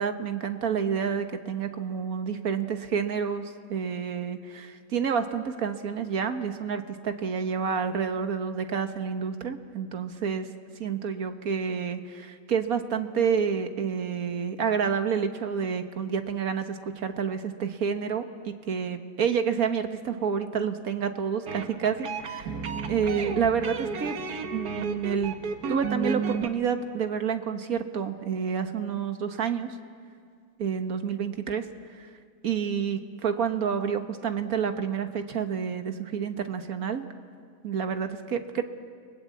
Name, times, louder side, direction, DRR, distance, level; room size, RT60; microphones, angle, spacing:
voice 1, 0.0-10.5 10.8-22.6 22.9-24.2 24.5-25.4 25.7-29.7 30.6-32.1 32.4-37.1 37.6-38.6, right 7 dB, 70° right, 8 dB, 1.7 m, -29 dB
sound 1, 21.5-26.5, right 5 dB, 90° right, 1.8 m, -32 dB
30.0 x 19.5 x 8.4 m, 2.1 s
omnidirectional pair, 1.6 m